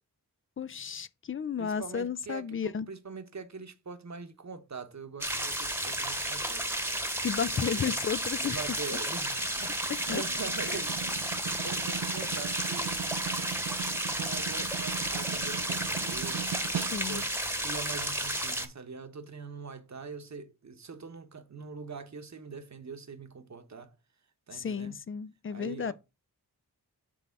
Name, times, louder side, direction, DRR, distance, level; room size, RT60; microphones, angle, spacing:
voice 1, 0.6-2.9 7.2-8.6 10.1-10.2 16.9-17.2 24.5-25.9, left 7 dB, 35° left, 0.5 m, -33 dB
voice 2, 1.6-7.1 7.5-8.1 8.3-13.0 14.0-16.5 16.9-23.9 24.5-25.0 25.5-25.9, right 5 dB, 45° right, 1.2 m, -43 dB
sound 1, 5.2-18.7, right 1 dB, 5° right, 1.2 m, -32 dB
Snare drum, 9.4-17.3, right 9 dB, 70° right, 0.7 m, -39 dB
6.1 x 3.4 x 5.7 m
cardioid pair, 45°, 37 cm